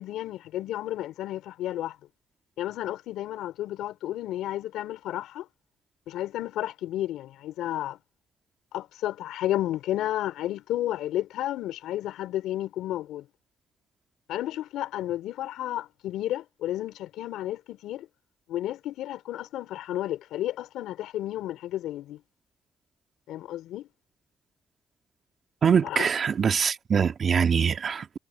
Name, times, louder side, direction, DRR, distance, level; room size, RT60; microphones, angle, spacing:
voice 1, 0.0-1.9 2.6-5.5 6.1-8.0 8.7-13.2 14.3-18.1 18.5-22.2 23.3-23.9 25.8-26.1, left 13 dB, 75° left, 3.1 m, -32 dB
voice 2, 25.6-28.2, right 7 dB, 55° right, 2.4 m, -23 dB
hypercardioid pair, 50°, 0 cm